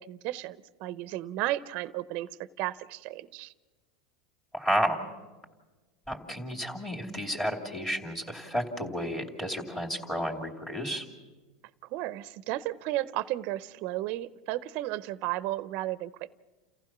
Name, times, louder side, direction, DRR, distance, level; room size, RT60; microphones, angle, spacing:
voice 1, 0.0-2.3 2.6-3.5 11.9-16.3, right 15 dB, 55° right, 16 dB, 0.7 m, -33 dB
voice 2, 4.5-5.0 6.1-11.1, equal, 15° left, 0 dB, 2.7 m, -31 dB
29.5 x 15.0 x 6.0 m, 1.2 s
supercardioid pair, 125°, 3 cm